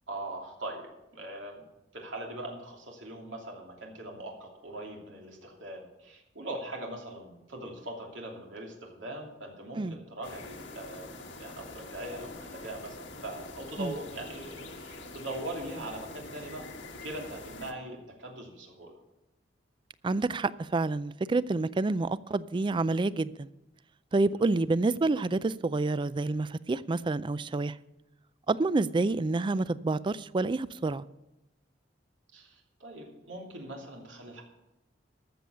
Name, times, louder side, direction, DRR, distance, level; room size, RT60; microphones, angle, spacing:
voice 1, 0.1-0.9 1.1-1.6 1.9-16.7 17.0-18.9 24.3-24.5 32.3-34.4, right 1 dB, 90° right, 0 dB, 2.8 m, -41 dB
sound 1, 10.2-17.7, left 2 dB, 85° left, 1.5 m, -45 dB
voice 2, 20.0-23.5 24.1-27.7 28.5-31.0, right 3 dB, 25° right, 17 dB, 0.4 m, -28 dB
13.5 x 7.1 x 6.8 m, 0.92 s
head